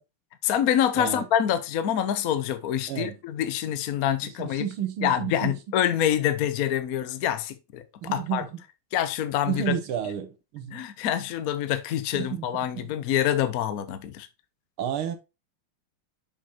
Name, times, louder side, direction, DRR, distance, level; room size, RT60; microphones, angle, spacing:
voice 1, 0.4-4.6 5.0-7.8 8.1-8.4 8.9-9.7 10.7-14.3, left 10 dB, 65° left, 0.9 m, -26 dB
voice 2, 1.0-1.3 2.9-3.2 4.2-5.6 8.0-8.5 9.5-10.8 12.1-12.5 12.7-12.9 14.8-15.2, right 10 dB, 90° right, 1.9 m, -31 dB
7.0 x 5.4 x 2.8 m
omnidirectional pair, 2.3 m